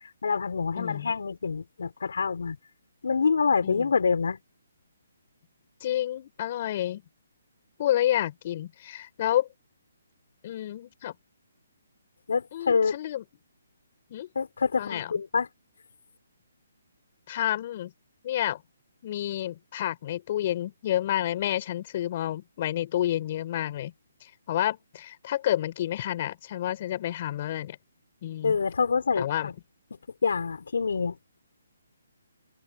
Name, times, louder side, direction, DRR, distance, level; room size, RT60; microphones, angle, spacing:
voice 1, 0.2-2.6 3.0-4.4 12.3-13.0 14.4-15.5 28.4-29.5 30.2-31.2, left 5 dB, 75° left, 5.5 m, -26 dB
voice 2, 0.8-1.1 3.6-3.9 5.8-7.0 7.8-9.5 10.4-11.1 12.5-13.2 14.1-14.3 14.8-15.1 17.3-17.9 18.2-18.6 19.0-23.9 24.2-27.8 28.2-28.6 29.2-29.5, left 12 dB, 40° left, 5.1 m, -29 dB
open air
hypercardioid pair, 160°, 0 cm